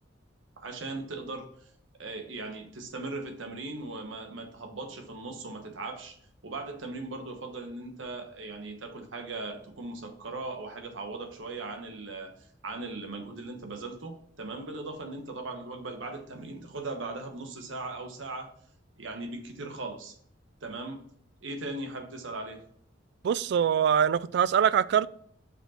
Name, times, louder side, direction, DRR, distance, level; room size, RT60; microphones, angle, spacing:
voice 1, 0.6-1.7 2.0-6.2 6.4-12.3 12.6-18.5 19.0-20.1 20.6-21.0 21.4-22.6, right 2 dB, 90° right, 1.2 m, -38 dB
voice 2, 23.2-25.1, right 8 dB, 60° right, 0.3 m, -23 dB
5.6 x 4.7 x 4.3 m
head